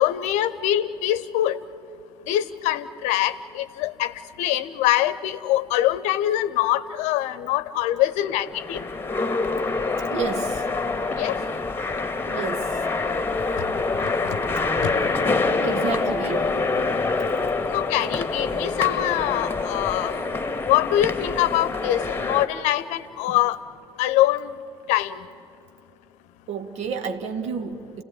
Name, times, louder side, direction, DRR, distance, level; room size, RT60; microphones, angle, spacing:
voice 1, 0.0-1.6 2.3-8.8 11.2-11.3 14.3-14.4 14.8-14.9 17.7-20.2 20.7-23.6 24.0-24.5 24.9-25.2, left 13 dB, 60° left, 16 dB, 0.9 m, -23 dB
sound 1, 8.1-22.5, left 3 dB, 15° left, 1.7 m, -26 dB
voice 2, 10.1-10.9 12.3-12.8 15.6-16.7 23.3-23.4 26.5-28.0, right 5 dB, 55° right, 8 dB, 1.7 m, -31 dB
29.5 x 16.5 x 9.6 m, 2.7 s
figure-of-eight pair, 60°, 14 cm